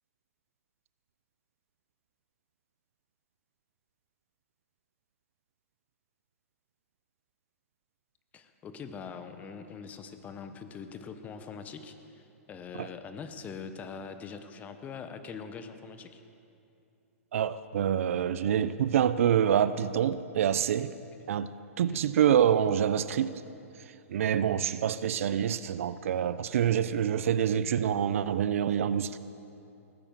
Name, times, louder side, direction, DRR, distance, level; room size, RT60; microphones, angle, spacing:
voice 1, 8.3-16.2 21.2-21.3 21.8-22.0, left 6 dB, 20° left, 9 dB, 1.1 m, -43 dB
voice 2, 17.3-20.9 21.3-23.3 24.1-29.2, right 9 dB, 65° right, 15 dB, 0.6 m, -26 dB
18.0 x 10.0 x 7.6 m, 2.7 s
hypercardioid pair, 140°, 8 cm